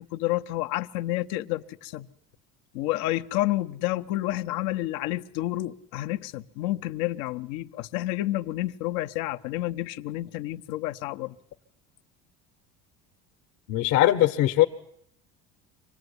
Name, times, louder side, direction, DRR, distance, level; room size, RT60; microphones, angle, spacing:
voice 1, 0.0-2.1 2.7-11.3, left 16 dB, 90° left, 1.1 m, -30 dB
voice 2, 13.7-14.6, left 14 dB, 75° left, 1.3 m, -20 dB
25.5 x 18.5 x 9.7 m
cardioid pair, 135°, 29 cm